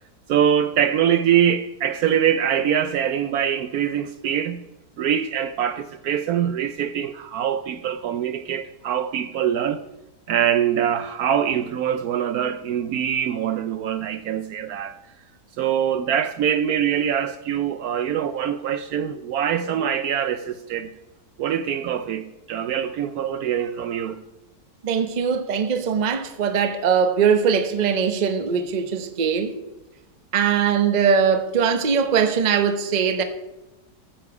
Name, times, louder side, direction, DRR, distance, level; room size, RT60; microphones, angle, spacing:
voice 1, 0.3-4.6 5.0-9.8 10.3-14.9 15.6-20.9 21.4-24.2, right 9 dB, 70° right, 0.9 m, -23 dB
voice 2, 24.8-29.5 30.3-33.2, right 6 dB, 35° right, 0.7 m, -21 dB
15.0 x 6.9 x 4.8 m
omnidirectional pair, 1.8 m